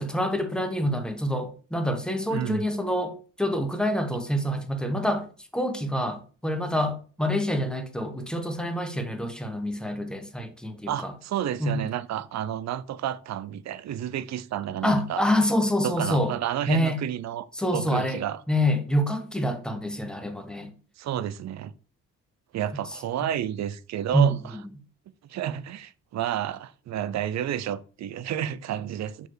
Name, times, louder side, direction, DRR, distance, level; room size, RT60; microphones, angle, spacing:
voice 1, 0.0-5.2 5.5-11.1 11.6-11.8 14.8-16.3 16.7-17.0 17.5-18.2 18.5-20.7 24.1-24.6, equal, 5° left, 1.2 m, -26 dB
voice 2, 2.3-2.7 10.9-15.3 15.8-17.5 17.7-18.4 21.0-21.7 22.5-24.3 25.3-29.3, right 11 dB, 60° right, 0.6 m, -31 dB
6.7 x 4.5 x 4.7 m
cardioid pair, 90°, 30 cm